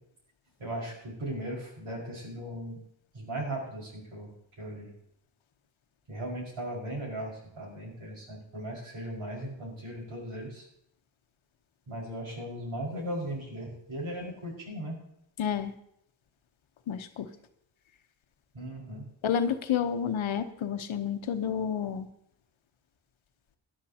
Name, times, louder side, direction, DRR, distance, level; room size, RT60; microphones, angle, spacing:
voice 1, 0.6-2.8 3.1-4.3 4.6-4.9 6.1-10.7 11.9-15.0 18.5-19.1, right 1 dB, 80° right, -2 dB, 5.2 m, -37 dB
voice 2, 15.4-15.7 16.9-17.3 19.2-22.1, left 8 dB, 90° left, 8 dB, 1.0 m, -30 dB
17.5 x 11.0 x 2.8 m, 0.73 s
wide cardioid pair, 90°, 46 cm